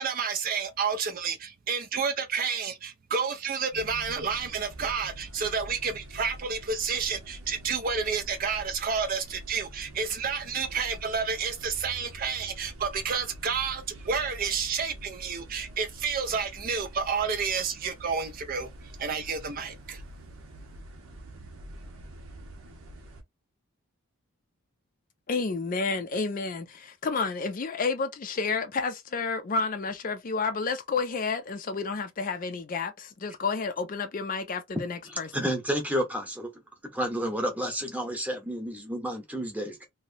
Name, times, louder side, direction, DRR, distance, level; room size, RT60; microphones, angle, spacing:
voice 1, 0.0-18.7 19.0-20.0, right 5 dB, 40° right, 0.3 m, -30 dB
sound 1, 3.7-23.2, right 1 dB, 70° right, 0.8 m, -46 dB
voice 2, 25.3-35.5, left 4 dB, 40° left, 0.4 m, -30 dB
voice 3, 35.1-36.5 36.9-39.9, equal, 5° right, 0.9 m, -30 dB
3.0 x 2.7 x 2.7 m
head